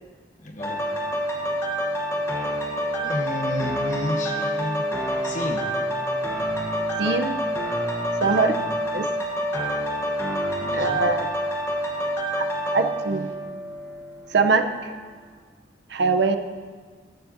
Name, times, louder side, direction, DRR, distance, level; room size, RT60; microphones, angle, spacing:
voice 1, 0.4-0.8 3.0-4.8 5.2-5.6 8.4-8.7 10.6-11.0, left 1 dB, 40° left, 2 dB, 1.1 m, -31 dB
sound 1, 0.6-14.3 14.8-14.9, equal, 15° left, 1.1 m, -27 dB
voice 2, 7.0-7.4 8.2-8.6 8.9-9.1 10.7-11.3 12.4-13.3 14.3-14.9 15.9-16.4, right 4 dB, 60° right, 7 dB, 0.6 m, -22 dB
15.0 x 9.6 x 2.6 m, 1.6 s
head